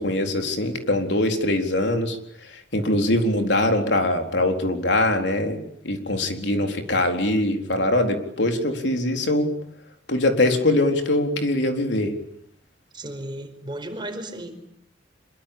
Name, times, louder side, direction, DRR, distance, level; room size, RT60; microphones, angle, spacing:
voice 1, 0.0-2.2 2.7-9.5 10.1-12.1, left 1 dB, 70° left, 5 dB, 4.1 m, -22 dB
voice 2, 12.9-14.6, right 1 dB, 25° right, 6 dB, 4.9 m, -34 dB
26.5 x 23.5 x 8.8 m, 0.69 s
head